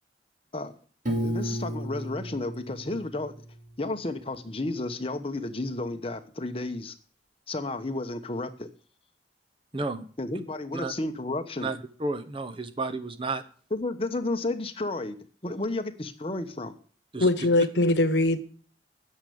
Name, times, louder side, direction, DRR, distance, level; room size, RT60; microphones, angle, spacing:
voice 1, 1.1-3.4 3.8-6.9 7.5-8.7 10.2-11.7 13.7-15.1 15.4-16.8, left 2 dB, 30° left, 1.0 m, -32 dB
Piano, 1.1-4.0, right 1 dB, 45° right, 2.6 m, -33 dB
voice 2, 9.7-10.1 10.7-10.9 11.6-13.4 17.1-17.3, right 3 dB, 30° right, 0.9 m, -32 dB
voice 3, 17.2-18.4, left 2 dB, 75° left, 1.1 m, -22 dB
9.7 x 6.7 x 8.6 m
head